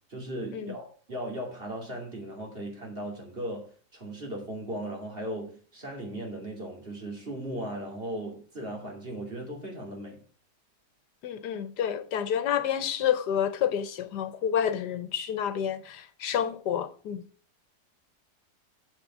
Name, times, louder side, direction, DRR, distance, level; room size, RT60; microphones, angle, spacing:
voice 1, 0.1-10.2, right 1 dB, 35° right, 2.9 m, -37 dB
voice 2, 11.2-17.2, left 9 dB, 85° left, 1.5 m, -29 dB
7.5 x 6.8 x 6.1 m
omnidirectional pair, 1.8 m